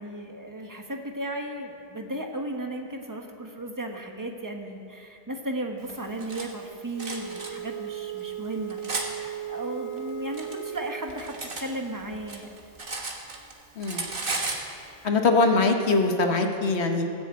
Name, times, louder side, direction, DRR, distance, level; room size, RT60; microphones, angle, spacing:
voice 1, 0.0-12.5, right 1 dB, 20° right, 2 dB, 1.3 m, -35 dB
Cutlery silverware, 5.9-6.5 7.0-7.5 8.2-9.1 10.0-11.7 12.0-13.5 13.8-14.7, right 3 dB, 55° right, 1.6 m, -34 dB
Wind instrument woodwind instrument, 6.9-11.1, right 10 dB, 30° left, 0.7 m, -36 dB
voice 2, 15.0-17.0, left 3 dB, 85° left, 4 dB, 1.5 m, -22 dB
17.5 x 7.1 x 8.2 m, 2.5 s
omnidirectional pair, 1.1 m